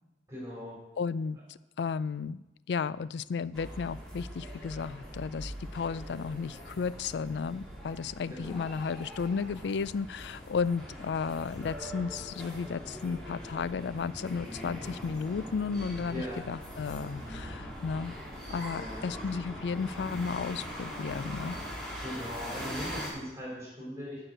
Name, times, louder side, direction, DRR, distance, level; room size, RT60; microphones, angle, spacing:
voice 1, 0.3-0.8 8.3-8.6 16.1-16.4 18.7-19.1 22.0-24.3, equal, 15° right, -4 dB, 3.4 m, -39 dB
voice 2, 1.0-18.2 18.5-21.6, left 5 dB, 70° left, 17 dB, 0.4 m, -34 dB
sound 1, 3.5-23.1, equal, 5° left, 2.4 m, -42 dB
12.0 x 4.9 x 7.9 m, 1.1 s
head